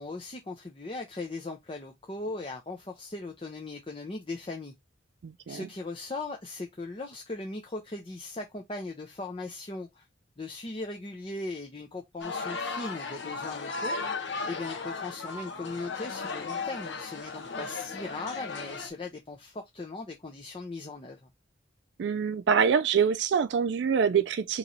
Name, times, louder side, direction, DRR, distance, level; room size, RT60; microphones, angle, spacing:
voice 1, 0.0-4.7 5.5-10.1 10.4-14.0 14.4-21.2, left 2 dB, 30° left, 0.6 m, -38 dB
voice 2, 5.2-5.6 22.0-24.6, right 6 dB, 65° right, 0.3 m, -25 dB
sound 1, 12.2-18.9, left 4 dB, 75° left, 1.0 m, -36 dB
4.2 x 3.1 x 3.9 m
head